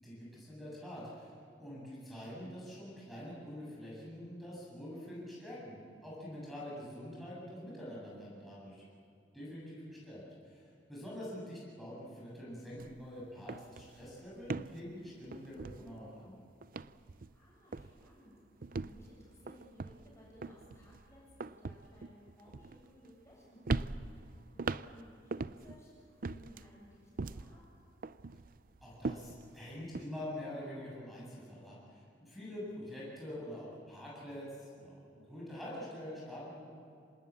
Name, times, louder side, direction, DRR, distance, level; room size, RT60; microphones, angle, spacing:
voice 1, 0.0-1.3 1.6-8.8 9.3-16.4 28.8-36.7, left 1 dB, ahead, -7 dB, 7.8 m, -46 dB
sound 1, 12.8-13.0 13.3-16.3 16.6-17.5 17.7-18.1 18.6-23.3 23.7-25.8 26.2-27.6 28.0-30.1, right 3 dB, 50° right, 0.5 m, -41 dB
voice 2, 17.1-27.6, equal, 15° left, -5 dB, 7.7 m, -59 dB
26.5 x 19.5 x 8.5 m, 2.5 s
head